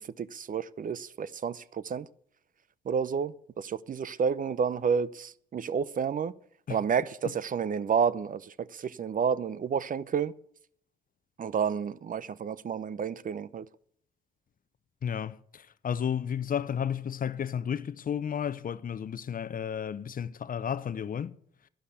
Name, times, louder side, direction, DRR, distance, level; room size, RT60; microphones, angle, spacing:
voice 1, 0.0-2.1 2.9-6.3 6.7-10.3 11.4-13.7, right 6 dB, 45° right, 0.7 m, -30 dB
voice 2, 15.0-21.3, left 8 dB, 45° left, 0.8 m, -32 dB
11.5 x 10.5 x 8.2 m
hypercardioid pair, 45°, 20 cm